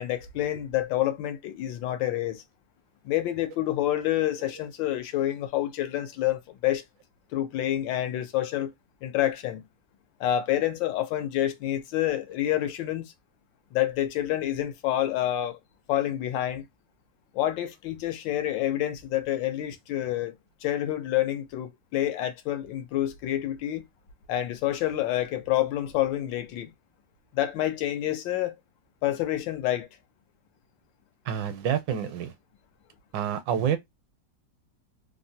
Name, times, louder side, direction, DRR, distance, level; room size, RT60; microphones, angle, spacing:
voice 1, 0.0-2.4 3.0-6.8 7.3-8.7 9.0-9.6 10.2-13.1 13.7-15.6 15.9-16.7 17.3-20.3 20.6-23.8 24.3-26.7 27.3-28.5 29.0-29.9, left 13 dB, 85° left, 1.4 m, -28 dB
voice 2, 31.3-32.3 33.1-33.8, right 9 dB, 80° right, 1.3 m, -27 dB
3.2 x 2.1 x 2.7 m
omnidirectional pair, 2.0 m